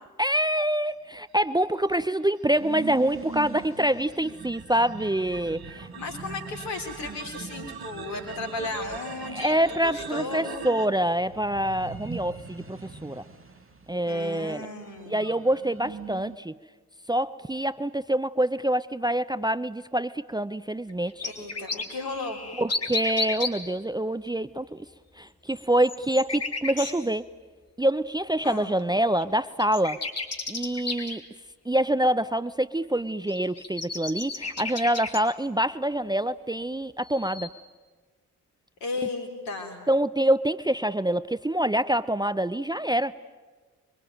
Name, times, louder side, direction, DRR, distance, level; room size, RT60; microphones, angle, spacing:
voice 1, 0.2-5.9 9.3-13.3 13.9-14.7 15.1-16.6 17.1-21.3 22.6-24.8 25.2-27.3 27.8-30.0 30.5-31.2 31.7-37.5 39.9-43.1, right 1 dB, 10° right, 13 dB, 0.8 m, -26 dB
sound 1, 1.6-10.9, right 7 dB, 55° right, 2.0 m, -43 dB
sound 2, 2.5-16.4, right 4 dB, 30° right, 2.5 m, -43 dB
voice 2, 5.9-9.6 9.8-10.7 14.1-15.3 21.2-22.4 28.4-28.7 38.8-39.8, left 3 dB, 70° left, 3 dB, 4.5 m, -35 dB
sound 3, 20.9-23.5 25.5-26.9 28.8-28.9 29.2-29.3 29.6-31.2 33.3-35.2 37.0-37.5, left 3 dB, 35° left, 3.8 m, -32 dB
26.0 x 23.5 x 9.3 m, 1.3 s
figure-of-eight pair, 40°, 44 cm